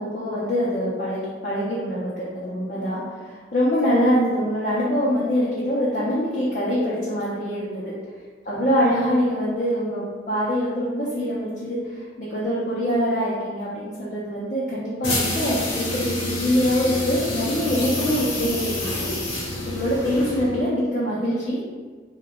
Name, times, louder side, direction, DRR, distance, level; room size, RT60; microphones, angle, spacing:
voice 1, 0.0-7.9 8.4-19.1 19.7-21.6, equal, 45° left, -9 dB, 0.6 m, -24 dB
sound 1, 15.0-20.7, left 1 dB, 90° left, 0.9 m, -28 dB
2.8 x 2.2 x 3.4 m, 1.5 s
head